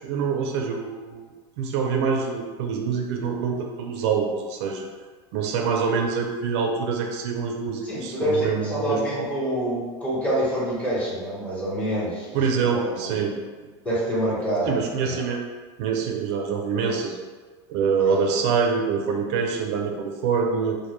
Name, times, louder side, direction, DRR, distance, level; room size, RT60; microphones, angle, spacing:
voice 1, 0.0-4.9 5.3-9.3 12.3-13.4 13.6-13.7 14.6-15.4 15.8-17.2 17.7-20.8, right 5 dB, 70° right, 2 dB, 0.4 m, -25 dB
voice 2, 7.8-12.4 12.7-13.1 13.8-14.7 15.0-15.2, equal, 10° left, -9 dB, 0.9 m, -26 dB
2.1 x 2.0 x 3.0 m, 1.4 s
supercardioid pair, 135°, 14 cm